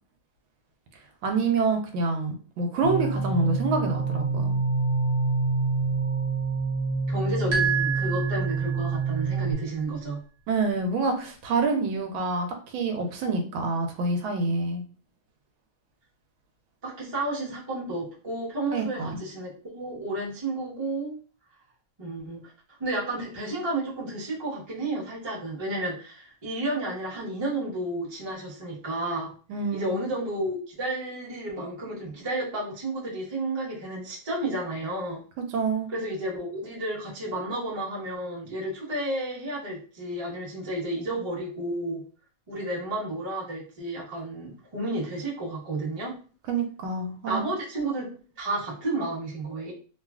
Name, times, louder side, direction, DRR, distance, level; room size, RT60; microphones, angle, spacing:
voice 1, 1.2-4.6 10.5-12.5 12.7-14.8 18.7-19.2 29.5-30.0 35.5-35.9 46.5-47.4, right 3 dB, 90° right, 5 dB, 1.4 m, -27 dB
sound 1, 2.8-9.5, right 4 dB, 90° left, 1.4 m, -27 dB
voice 2, 7.1-10.2 16.8-21.2 22.0-22.4 22.7-29.3 29.7-35.2 35.9-42.0 42.5-46.2 47.3-48.1 48.4-49.7, right 1 dB, 25° right, -5 dB, 0.6 m, -32 dB
sound 2, 7.5-9.1, right 7 dB, 65° right, 1.2 m, -28 dB
3.1 x 2.3 x 2.3 m, 0.38 s
omnidirectional pair, 2.1 m